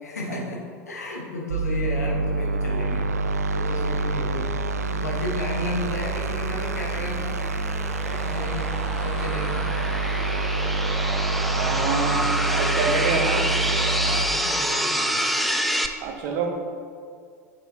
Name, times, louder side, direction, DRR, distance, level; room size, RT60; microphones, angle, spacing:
voice 1, 0.0-7.4 8.1-8.7 9.0-9.7 14.0-15.2, left 1 dB, 80° left, -2 dB, 1.2 m, -33 dB
sound 1, 1.5-14.2, right 3 dB, 75° right, 0.3 m, -26 dB
sound 2, 5.3-15.9, equal, ahead, 0.4 m, -28 dB
voice 2, 11.5-13.5 16.0-16.5, right 4 dB, 45° right, 2 dB, 1.0 m, -27 dB
7.3 x 6.4 x 2.9 m, 2.1 s
figure-of-eight pair, 80°, 9 cm